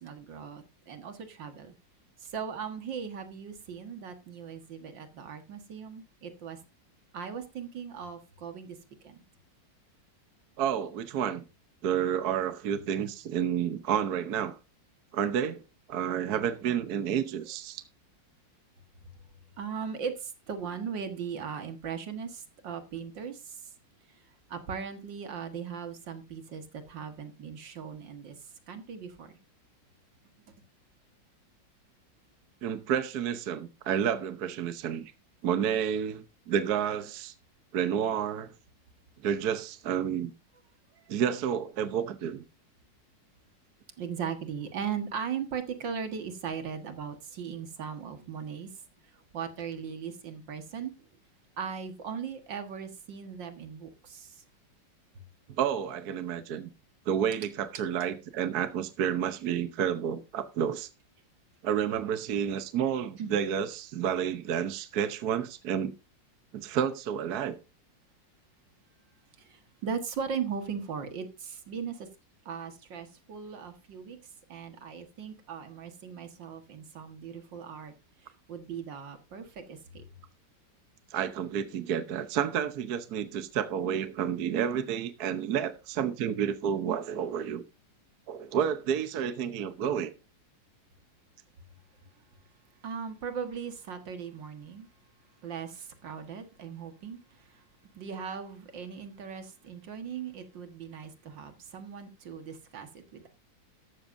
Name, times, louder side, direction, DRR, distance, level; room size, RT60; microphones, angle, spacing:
voice 1, 0.0-1.7 2.3-6.6 7.1-8.8 9.0-9.2 19.6-23.5 24.5-28.4 28.7-29.4 44.0-48.7 49.3-50.9 51.6-54.3 63.2-63.4 69.5-72.1 72.5-74.2 74.5-77.9 78.5-80.0 92.8-94.9 95.4-97.2 98.0-103.2, right 7 dB, 75° right, 2.3 m, -38 dB
voice 2, 10.6-11.4 11.8-14.6 15.1-15.6 15.9-17.8 32.6-35.1 35.4-37.3 37.7-38.5 39.2-40.3 41.1-42.4 55.5-56.7 57.1-60.9 61.6-65.9 66.5-67.6 81.1-87.6 88.3-90.1, right 8 dB, 60° right, 1.4 m, -30 dB
13.5 x 12.5 x 2.6 m
omnidirectional pair, 2.0 m